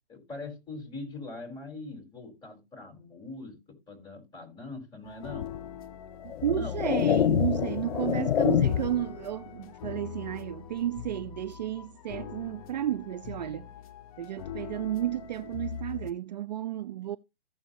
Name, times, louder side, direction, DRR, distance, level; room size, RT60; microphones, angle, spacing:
voice 1, 0.1-5.5 6.5-7.0, left 3 dB, 15° left, 4.4 m, -42 dB
sound 1, 5.0-16.1, left 9 dB, 35° left, 0.9 m, -42 dB
sound 2, 5.4-5.6 6.3-9.1, left 10 dB, 90° left, 0.5 m, -26 dB
voice 2, 6.2-13.7 14.2-17.2, right 12 dB, 45° right, 0.5 m, -32 dB
14.5 x 7.4 x 2.9 m
hypercardioid pair, 145°, 30 cm